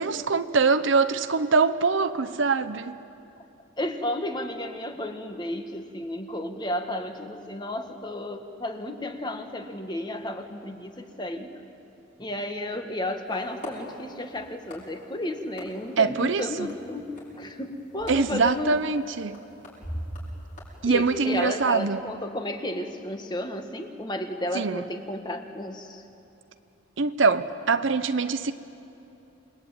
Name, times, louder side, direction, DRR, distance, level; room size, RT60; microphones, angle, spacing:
voice 1, 0.0-3.0 16.0-16.7 18.1-19.4 20.8-22.0 24.5-24.8 27.0-28.5, right 4 dB, 70° right, 0.8 m, -23 dB
voice 2, 3.8-11.6 12.2-18.8 20.8-26.0, left 1 dB, 20° left, 1.6 m, -33 dB
sound 1, 13.3-21.9, equal, 40° left, 6.6 m, -42 dB
29.0 x 21.0 x 9.1 m
head